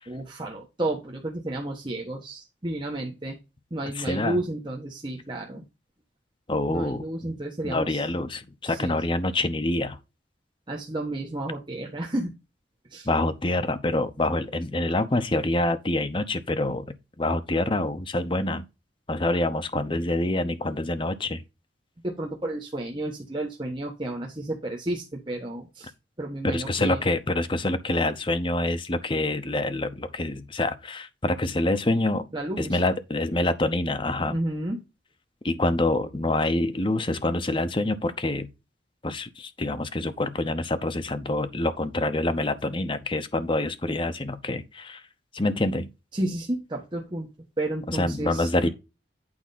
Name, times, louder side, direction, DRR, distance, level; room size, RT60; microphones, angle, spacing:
voice 1, 0.1-3.4 3.7-5.6 6.7-8.0 8.7-9.0 10.7-12.3 12.9-13.1 22.0-25.9 26.2-27.0 32.3-32.8 34.3-34.8 46.1-47.3 47.6-48.7, right 1 dB, 25° right, 1.2 m, -31 dB
voice 2, 3.9-4.4 6.5-7.3 7.6-10.0 13.0-18.6 19.1-21.4 26.4-32.3 32.6-34.4 35.4-38.5 39.0-45.0 45.3-45.9 47.9-48.7, left 2 dB, 25° left, 0.9 m, -26 dB
8.8 x 4.8 x 4.1 m
head